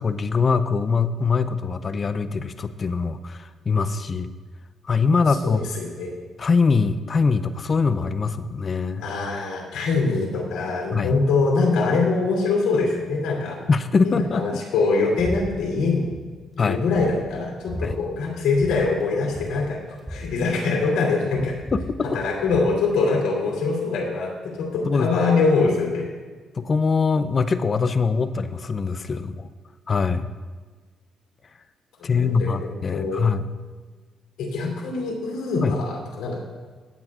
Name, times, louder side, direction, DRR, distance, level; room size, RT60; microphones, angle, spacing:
voice 1, 0.0-4.3 4.8-5.7 6.4-9.0 10.9-11.1 13.7-14.4 16.6-16.8 17.8-18.0 21.2-21.3 21.7-21.8 24.9-25.1 26.6-29.5 29.9-30.3 32.0-33.4 35.6-35.8, left 4 dB, 40° left, 11 dB, 0.5 m, -22 dB
voice 2, 5.4-6.1 9.0-13.6 14.0-16.1 16.6-19.8 20.1-21.5 22.1-26.1 32.0-33.2 34.4-36.4, left 3 dB, 85° left, -2 dB, 2.7 m, -23 dB
sound 1, 15.2-15.4 15.7-16.2 16.6-16.7 17.0-17.9 18.5-18.8 19.0-19.1 19.3-21.0 21.3-22.7, equal, ahead, 2.6 m, -35 dB
16.0 x 8.6 x 2.4 m, 1.4 s
cardioid pair, 90°, 0 cm